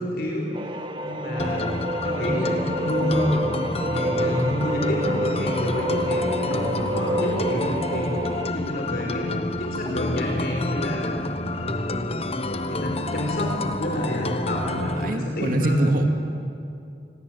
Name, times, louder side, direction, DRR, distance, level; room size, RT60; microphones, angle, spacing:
voice 1, 0.0-1.7 2.0-3.5 3.9-11.1 11.5-12.1 12.7-15.9, left 1 dB, 60° left, -1 dB, 4.8 m, -28 dB
sound 1, 0.5-8.5, right 1 dB, 30° right, 1.4 m, -28 dB
sound 2, 1.4-15.1, left 2 dB, 35° left, 1.0 m, -29 dB
voice 2, 15.0-16.1, right 1 dB, 50° right, 4 dB, 2.5 m, -23 dB
28.5 x 22.0 x 8.9 m, 2.6 s
head